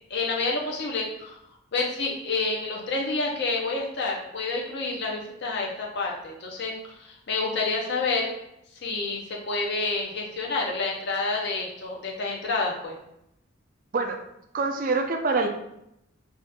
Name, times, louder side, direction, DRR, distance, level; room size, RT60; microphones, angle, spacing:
voice 1, 0.0-1.4 1.7-6.7 7.0-8.3 8.8-9.2 9.5-12.9, left 3 dB, 55° left, -1 dB, 0.6 m, -28 dB
voice 2, 14.5-15.5, right 3 dB, 40° right, 4 dB, 0.4 m, -25 dB
2.7 x 2.4 x 3.5 m, 0.80 s
head